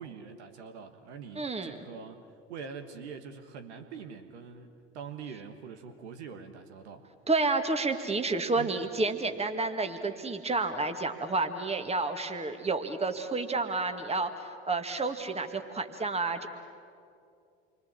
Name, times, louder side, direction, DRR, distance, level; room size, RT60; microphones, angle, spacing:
voice 1, 0.0-7.1 8.6-8.7, right 6 dB, 75° right, 7 dB, 1.5 m, -44 dB
voice 2, 1.4-1.8 7.3-16.5, right 3 dB, 20° right, 6 dB, 2.2 m, -30 dB
28.5 x 24.0 x 7.6 m, 2.4 s
figure-of-eight pair, 60°, 34 cm